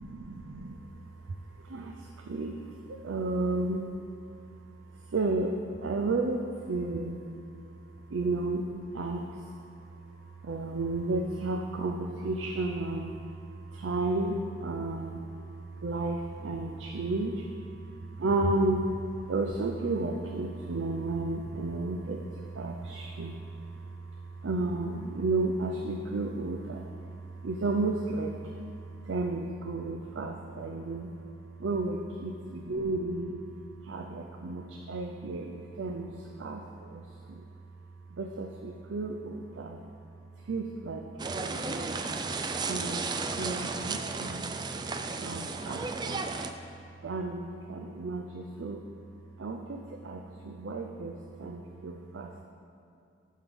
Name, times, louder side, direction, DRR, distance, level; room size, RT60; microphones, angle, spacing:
voice 1, 0.0-31.1 31.6-33.4 33.8-37.5 38.1-39.8 40.4-42.0 42.6-44.6 45.2-46.2 47.0-48.8 49.4-52.4, right 2 dB, 80° right, 3 dB, 0.5 m, -33 dB
sound 1, 41.2-46.5, right 4 dB, 20° right, 0.3 m, -34 dB
12.5 x 5.6 x 3.6 m, 2.5 s
head